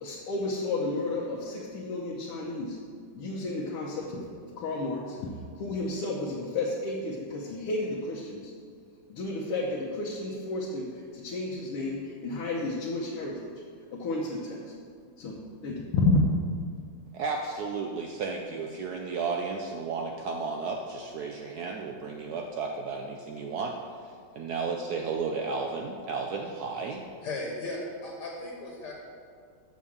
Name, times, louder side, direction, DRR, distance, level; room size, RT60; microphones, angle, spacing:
voice 1, 0.0-2.8 3.1-5.3 5.6-8.5 9.1-13.5 13.9-14.7 15.2-16.3, left 2 dB, 90° left, -4 dB, 1.9 m, -31 dB
voice 2, 17.1-23.8 24.4-27.1, right 4 dB, 90° right, 1 dB, 0.8 m, -33 dB
voice 3, 27.1-28.9, left 2 dB, 55° left, -1 dB, 1.6 m, -36 dB
6.3 x 6.1 x 7.1 m, 2.2 s
omnidirectional pair, 2.4 m